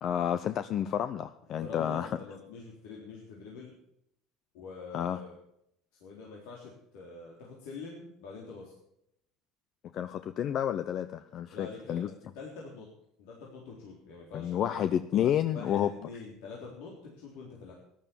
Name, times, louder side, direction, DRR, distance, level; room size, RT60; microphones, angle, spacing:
voice 1, 0.0-2.1 4.9-5.2 9.9-12.1 14.3-15.9, left 10 dB, 50° left, 11 dB, 0.7 m, -30 dB
voice 2, 1.6-3.8 4.5-5.3 6.0-8.7 11.5-12.0 12.4-12.9 13.2-14.8 15.5-17.7, left 4 dB, 80° left, -3 dB, 3.9 m, -45 dB
14.0 x 11.5 x 7.1 m, 0.76 s
supercardioid pair, 100°, 0 cm